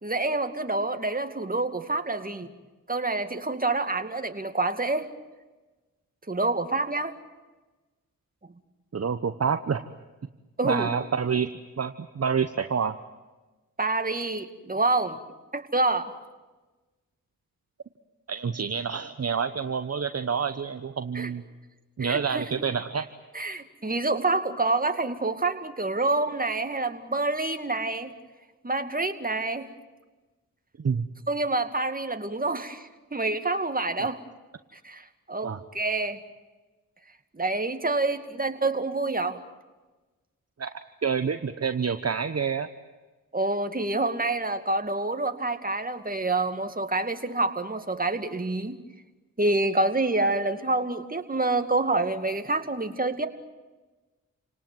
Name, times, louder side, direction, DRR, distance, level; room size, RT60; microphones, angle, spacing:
voice 1, 0.0-2.5 2.9-5.1 6.3-7.2 10.6-10.9 13.8-15.2 15.5-16.1 21.1-21.3 22.0-22.4 23.3-28.1 28.6-29.7 31.3-34.2 34.7-36.2 37.3-39.4 43.3-48.8 49.4-53.3, right 2 dB, 25° right, 7 dB, 2.3 m, -27 dB
voice 2, 8.9-9.8 10.6-11.5 11.8-13.0 18.3-21.4 22.0-23.1 30.8-31.1 34.0-34.2 35.4-35.6 40.6-40.7 41.0-42.7, right 6 dB, 45° right, 9 dB, 1.1 m, -28 dB
29.5 x 18.5 x 9.3 m, 1.2 s
cardioid pair, 50°, 34 cm